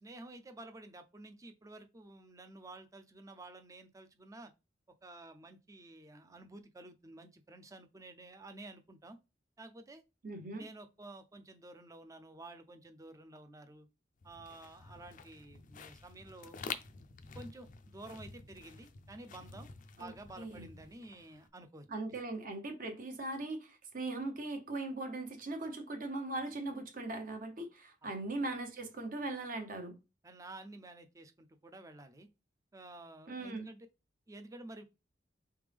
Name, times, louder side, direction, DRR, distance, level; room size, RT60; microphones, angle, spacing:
voice 1, 0.0-4.5 5.0-9.2 9.6-10.0 10.5-13.9 14.2-16.6 17.3-21.9 28.0-28.1 30.2-32.3 32.7-33.9 34.3-34.8, right 2 dB, 20° right, 0.5 m, -51 dB
voice 2, 10.2-10.6 20.0-20.1 20.4-20.7 21.9-30.0 33.3-33.7, right 2 dB, 50° right, 0.9 m, -39 dB
sound 1, 14.2-21.5, left 5 dB, 45° left, 0.4 m, -49 dB
3.7 x 3.4 x 3.4 m
head